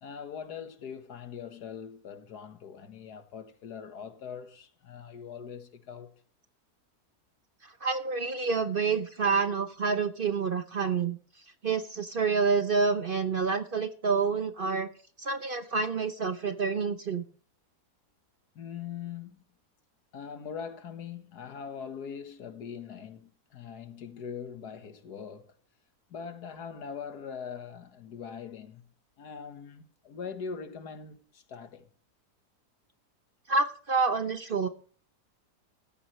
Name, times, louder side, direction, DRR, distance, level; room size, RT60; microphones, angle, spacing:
voice 1, 0.0-6.1 18.6-19.4 20.1-25.6 26.1-28.9 29.2-31.9, left 7 dB, 85° left, 1.9 m, -42 dB
voice 2, 7.6-11.2 11.6-14.9 15.2-17.3 33.5-34.7, right 5 dB, 45° right, 0.8 m, -28 dB
15.5 x 13.5 x 3.1 m
omnidirectional pair, 1.7 m